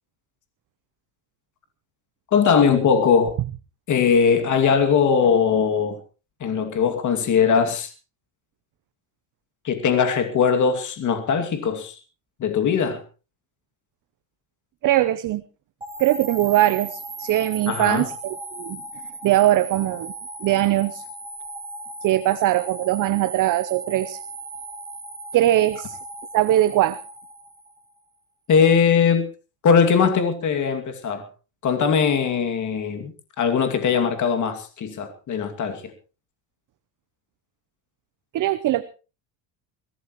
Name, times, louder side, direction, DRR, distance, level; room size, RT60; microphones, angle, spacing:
voice 1, 2.3-3.3 3.9-6.0 6.4-7.9 9.6-12.0 12.4-13.0 17.7-18.0 28.5-29.3 29.6-31.3 31.6-35.9, left 6 dB, 35° left, 2.5 m, -20 dB
voice 2, 14.8-15.4 16.0-18.8 19.2-20.1 20.4-21.0 22.0-24.2 25.3-26.0 26.3-27.0 38.3-38.8, right 14 dB, 40° right, 0.8 m, -21 dB
sound 1, 15.8-28.0, right 2 dB, 10° right, 3.2 m, -37 dB
22.0 x 16.5 x 3.1 m
cardioid pair, 140°, 48 cm